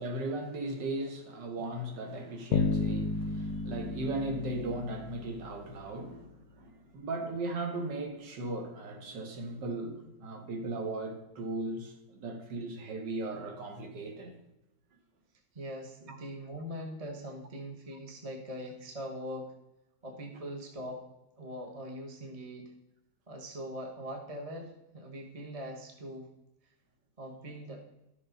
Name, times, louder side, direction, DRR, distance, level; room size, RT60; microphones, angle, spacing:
voice 1, 0.0-14.4 16.1-16.2, right 2 dB, 70° right, 1.9 m, -37 dB
Bass guitar, 2.5-5.6, left 4 dB, 70° left, 0.9 m, -32 dB
voice 2, 15.5-19.5 20.0-21.0 21.4-22.7 23.3-26.3 27.2-27.8, equal, 25° right, 1.0 m, -42 dB
12.0 x 7.0 x 3.9 m
omnidirectional pair, 2.0 m